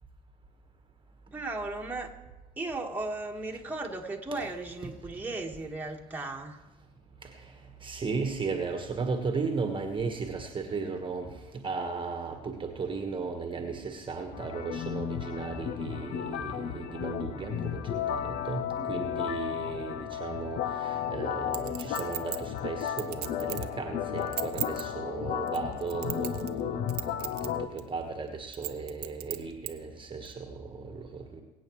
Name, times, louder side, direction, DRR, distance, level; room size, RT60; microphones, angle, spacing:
voice 1, 1.3-2.1 2.6-6.6 18.8-18.9, right 2 dB, 10° right, 1 dB, 1.8 m, -36 dB
voice 2, 7.8-11.3 11.6-18.6 18.9-27.1 27.4-31.4, right 4 dB, 25° right, 4 dB, 1.5 m, -35 dB
sound 1, 14.3-27.7, left 9 dB, 55° left, 0.8 m, -34 dB
Chink clink, 21.5-23.7 24.2-24.8 25.5-26.6 26.9-27.5 27.8-27.9 28.5-29.7 30.3-30.4, right 13 dB, 85° right, 0.8 m, -36 dB
23.5 x 8.4 x 3.2 m, 1.1 s
hypercardioid pair, 70°, 19 cm